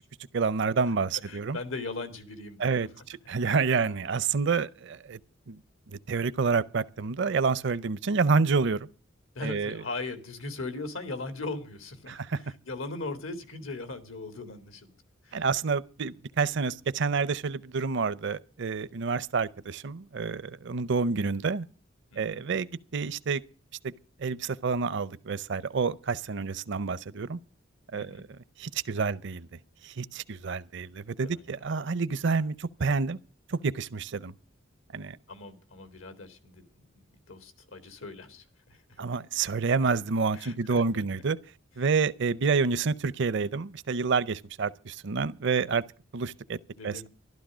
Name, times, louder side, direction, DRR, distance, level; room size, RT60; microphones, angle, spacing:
voice 1, 0.3-1.6 2.6-5.2 5.5-5.6 5.9-8.9 9.4-9.8 12.1-12.4 15.3-21.7 22.2-23.4 23.8-23.9 24.2-27.4 27.9-28.2 28.6-29.5 29.8-33.2 33.5-34.3 34.9-35.2 39.0-41.4 41.8-45.8 46.1-46.6 46.8-47.1, right 5 dB, 60° right, 0.6 m, -28 dB
voice 2, 1.2-2.9 9.4-15.0 15.2-15.5 22.1-22.4 27.9-28.2 31.2-31.5 35.3-39.0 40.3-41.0 46.7-47.1, left 3 dB, 85° left, 2.1 m, -39 dB
13.0 x 12.0 x 6.1 m
head